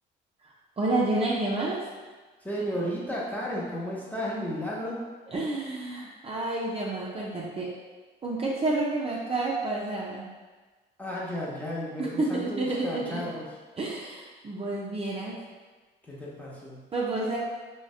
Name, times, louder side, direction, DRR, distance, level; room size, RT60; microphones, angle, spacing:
voice 1, 0.8-1.8 5.3-7.7 8.2-10.3 12.0-13.2 13.8-15.4 16.9-17.4, right 2 dB, 30° right, -5 dB, 0.4 m, -29 dB
voice 2, 2.4-5.0 11.0-13.5 16.1-16.8, equal, 10° left, -6 dB, 0.7 m, -33 dB
2.5 x 2.1 x 2.3 m, 1.3 s
supercardioid pair, 65°, 21 cm